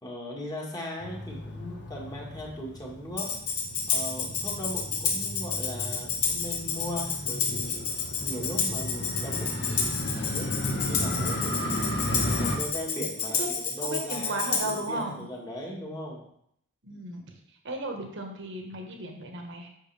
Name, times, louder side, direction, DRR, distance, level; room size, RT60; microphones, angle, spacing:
voice 1, 0.0-3.3 3.9-11.9 12.3-16.2, equal, 20° left, -2 dB, 1.6 m, -38 dB
Motorcycle, 1.0-12.6, left 1 dB, 55° left, 1.4 m, -34 dB
Tambourine, 3.2-14.9, left 5 dB, 85° left, 1.4 m, -30 dB
voice 2, 13.8-15.3 16.8-17.4 17.6-19.7, right 2 dB, 55° right, 2 dB, 1.4 m, -35 dB
8.7 x 6.4 x 3.4 m, 0.72 s
head